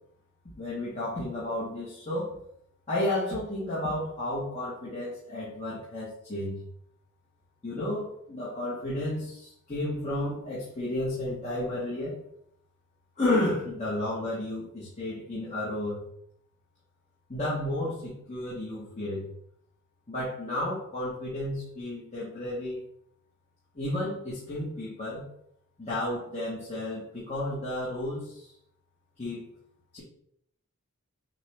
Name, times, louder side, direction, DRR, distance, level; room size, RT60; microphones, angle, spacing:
voice 1, 0.5-2.4 2.9-6.6 7.6-12.2 13.2-16.0 17.3-19.3 20.1-22.8 23.7-25.3 25.8-28.5 29.2-29.5 29.9-30.0, left 1 dB, 30° left, -7 dB, 1.1 m, -32 dB
6.5 x 2.2 x 3.2 m, 0.72 s
head